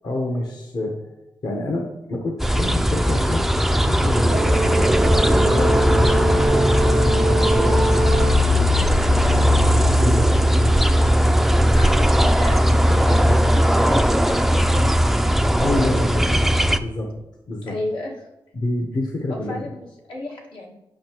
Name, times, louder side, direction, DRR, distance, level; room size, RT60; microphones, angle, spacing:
voice 1, 0.0-1.0 1.4-5.9 6.8-9.5 9.8-10.9 15.6-16.1 16.8-17.1 17.5-17.7 18.5-19.7, left 1 dB, 55° left, 1 dB, 1.0 m, -28 dB
sound 1, 2.4-16.8, equal, 5° right, 0.4 m, -18 dB
Brass instrument, 4.3-8.5, right 2 dB, 55° right, 0.6 m, -23 dB
voice 2, 11.8-15.9 16.1-16.4 17.6-18.2 19.3-20.7, left 1 dB, 80° left, -3 dB, 1.7 m, -33 dB
8.7 x 5.6 x 3.0 m, 0.93 s
cardioid pair, 70°, 8 cm